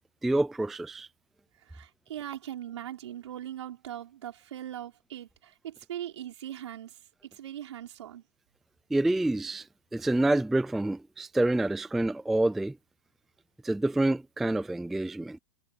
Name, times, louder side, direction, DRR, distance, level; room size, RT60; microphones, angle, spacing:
voice 1, 0.2-1.1 8.9-9.7 9.9-12.8 13.6-15.4, right 2 dB, ahead, 0.3 m, -27 dB
voice 2, 1.6-8.2, right 11 dB, 65° right, 4.8 m, -40 dB
hypercardioid pair, 175°, 16 cm